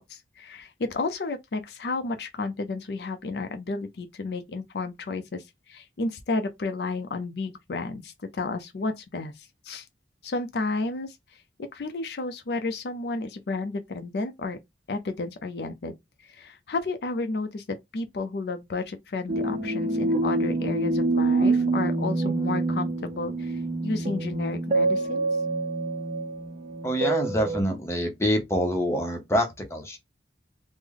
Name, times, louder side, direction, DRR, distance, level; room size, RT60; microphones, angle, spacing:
voice 1, 0.0-9.9 10.2-11.2 11.7-14.6 14.9-15.9 16.2-25.3, left 3 dB, 65° left, 0.5 m, -32 dB
sound 1, 19.3-27.6, right 2 dB, 40° right, 0.6 m, -26 dB
voice 2, 26.8-30.0, equal, 15° left, 0.7 m, -26 dB
3.3 x 2.0 x 3.6 m
head